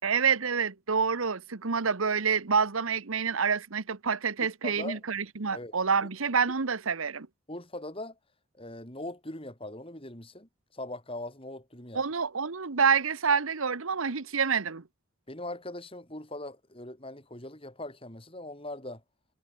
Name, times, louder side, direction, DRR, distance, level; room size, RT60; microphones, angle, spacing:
voice 1, 0.0-7.3 11.9-14.8, right 6 dB, 80° right, 1.1 m, -27 dB
voice 2, 4.4-5.0 5.5-5.8 7.5-8.2 8.6-12.0 15.3-19.0, left 1 dB, 25° left, 4.3 m, -41 dB
head